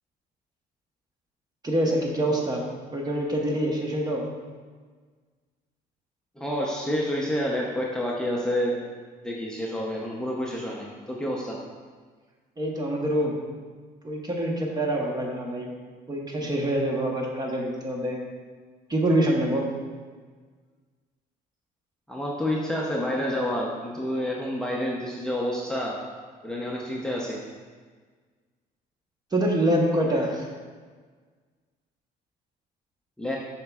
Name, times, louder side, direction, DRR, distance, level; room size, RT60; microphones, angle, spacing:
voice 1, 1.6-2.6 2.9-4.2 12.6-13.3 14.0-15.7 16.1-18.2 18.9-19.7 29.3-30.4, right 1 dB, 25° right, 0 dB, 1.0 m, -25 dB
voice 2, 6.4-8.9 9.2-11.5 22.1-26.0 26.4-27.4 33.2-33.4, equal, 5° left, -3 dB, 0.7 m, -29 dB
7.1 x 5.7 x 2.4 m, 1.5 s
cardioid pair, 110°, 17 cm